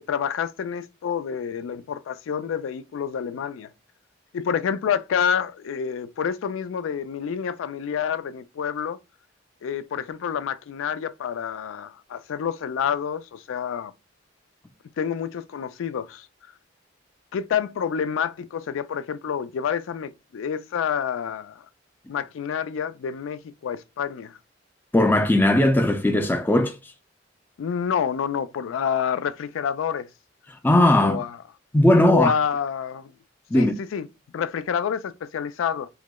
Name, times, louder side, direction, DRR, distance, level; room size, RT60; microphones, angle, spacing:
voice 1, 0.0-3.7 4.3-9.0 9.6-13.9 15.0-16.3 17.3-21.6 22.1-24.4 27.6-30.1 31.0-31.4 32.1-33.1 33.5-34.1 34.3-35.9, left 7 dB, 90° left, 0.3 m, -28 dB
voice 2, 24.9-26.8 30.6-31.2 31.7-32.3 33.5-33.7, left 1 dB, 10° left, 0.3 m, -18 dB
4.7 x 2.0 x 2.2 m
head